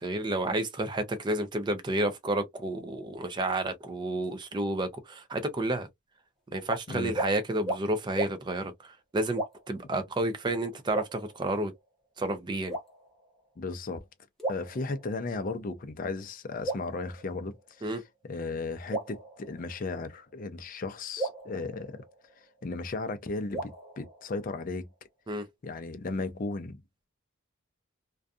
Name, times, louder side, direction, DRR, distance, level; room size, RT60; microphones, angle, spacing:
voice 1, 0.0-5.9 6.5-8.7 9.1-9.4 9.7-11.7 12.2-12.8 17.8-18.0 25.3-25.5, right 1 dB, 20° right, 0.4 m, -30 dB
sound 1, 6.6-6.8 7.1-7.3 7.6-7.8 8.1-8.3 9.3-9.8 10.9-11.8 12.7-13.4 14.4-15.4 16.6-17.8 18.9-20.1 21.2-22.6 23.5-24.7, right 2 dB, ahead, 0.8 m, -36 dB
voice 2, 13.6-14.1 14.5-22.0 22.6-24.9 25.6-26.8, left 3 dB, 40° left, 0.4 m, -35 dB
2.5 x 2.3 x 2.3 m
head